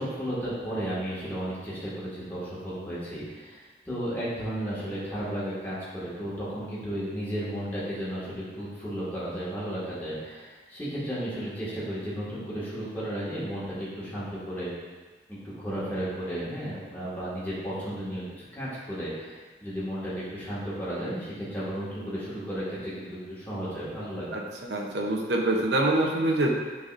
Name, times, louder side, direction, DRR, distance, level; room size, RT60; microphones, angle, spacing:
voice 1, 0.0-14.7 15.3-24.4, equal, 10° left, -10 dB, 1.9 m, -34 dB
voice 2, 24.7-26.5, right 2 dB, 80° right, 0 dB, 0.9 m, -25 dB
9.3 x 4.1 x 2.6 m, 1.4 s
head